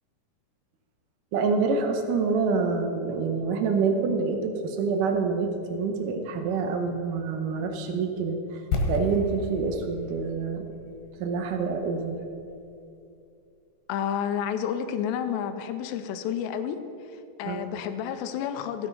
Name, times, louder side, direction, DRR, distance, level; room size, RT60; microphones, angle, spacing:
voice 1, 1.3-8.6 8.9-10.7 11.2-12.2 17.4-17.7, right 4 dB, 80° right, 4 dB, 1.9 m, -27 dB
sound 1, 8.7-12.6 12.9-13.0, left 2 dB, 70° left, 3.2 m, -33 dB
voice 2, 13.9-16.8 17.1-18.9, left 8 dB, 85° left, 9 dB, 2.9 m, -30 dB
15.5 x 9.3 x 5.4 m, 2.6 s
omnidirectional pair, 5.1 m